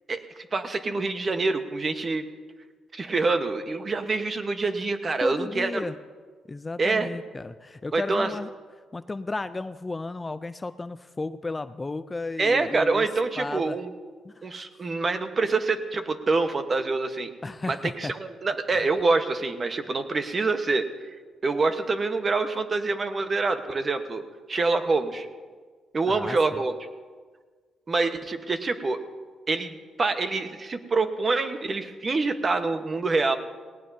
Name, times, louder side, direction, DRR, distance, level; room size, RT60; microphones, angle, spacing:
voice 1, 0.5-2.3 2.9-5.8 6.8-7.1 7.9-8.3 12.4-13.9 14.4-17.3 17.7-20.9 21.4-24.2 24.5-25.3 25.9-26.7 27.9-29.0 29.5-33.4, right 3 dB, 35° right, 8 dB, 1.1 m, -26 dB
voice 2, 5.2-5.9 6.5-8.5 8.9-13.1 13.4-13.8 14.2-14.5 17.4-18.1 18.7-18.9 26.1-26.6, left 3 dB, 20° left, 13 dB, 0.4 m, -34 dB
18.0 x 18.0 x 2.7 m, 1.5 s
cardioid pair, 90°, 0 cm